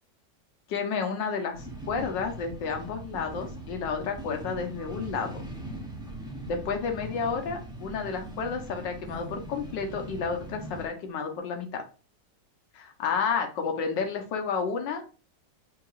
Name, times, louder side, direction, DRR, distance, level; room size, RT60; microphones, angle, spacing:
voice 1, 0.7-5.4 6.5-11.8 12.7-15.0, left 5 dB, 85° left, 4 dB, 1.6 m, -31 dB
sound 1, 1.5-10.9, right 1 dB, 5° right, 0.5 m, -40 dB
5.8 x 2.9 x 2.4 m, 0.36 s
omnidirectional pair, 1.9 m